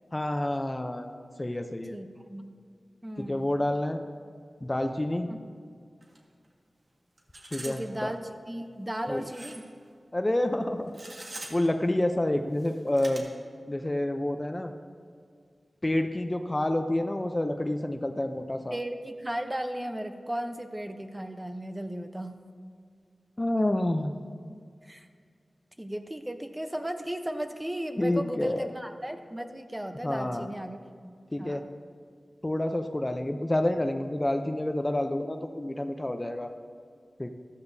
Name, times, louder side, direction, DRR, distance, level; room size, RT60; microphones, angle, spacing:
voice 1, 0.1-1.1 1.4-2.0 3.3-4.0 4.6-5.3 7.5-8.1 9.1-9.2 10.1-10.9 11.5-13.3 13.7-14.7 15.8-18.8 23.4-24.2 28.0-28.7 30.0-30.5 31.3-31.6 32.4-36.5 37.2-37.3, left 1 dB, 25° left, 6 dB, 0.6 m, -28 dB
voice 2, 1.9-2.5 3.0-3.5 5.3-5.4 7.6-9.6 18.7-22.4 24.8-25.1 25.8-31.7, right 1 dB, 15° right, 6 dB, 0.8 m, -36 dB
sound 1, 6.0-6.2 6.4-6.5 7.2-7.8 8.1-8.2 9.2-9.7 10.9-11.7 12.5-13.2, right 2 dB, 60° right, 1.7 m, -43 dB
14.0 x 12.5 x 2.7 m, 2.1 s
wide cardioid pair, 60°, 0 cm